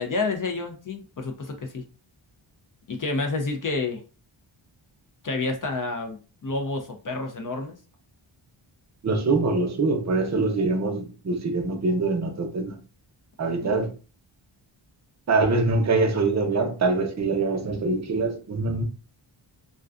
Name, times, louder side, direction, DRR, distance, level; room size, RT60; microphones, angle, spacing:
voice 1, 0.0-1.8 2.9-4.0 5.2-7.8 13.6-13.7, left 3 dB, 40° left, 0.5 m, -29 dB
voice 2, 9.0-12.8 13.4-13.9 15.3-18.8, right 3 dB, 35° right, 0.6 m, -24 dB
2.4 x 2.2 x 2.4 m
wide cardioid pair, 75°, 48 cm